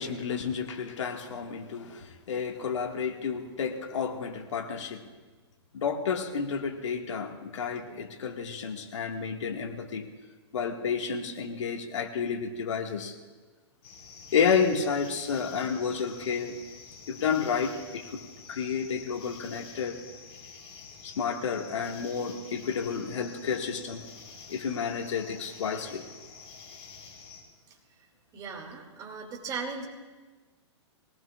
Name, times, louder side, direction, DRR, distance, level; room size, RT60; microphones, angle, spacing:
voice 1, 0.0-5.1 5.7-10.1 10.5-13.2 14.3-16.6 17.1-18.2 18.5-20.0 21.0-24.0 24.5-26.0, left 6 dB, 85° left, 3 dB, 1.8 m, -31 dB
sound 1, 13.8-27.4, left 5 dB, 60° left, 5.0 m, -48 dB
voice 2, 27.7-28.1 28.3-29.9, right 5 dB, 25° right, 1 dB, 2.5 m, -38 dB
23.0 x 18.0 x 2.4 m, 1.3 s
hypercardioid pair, 145°, 15 cm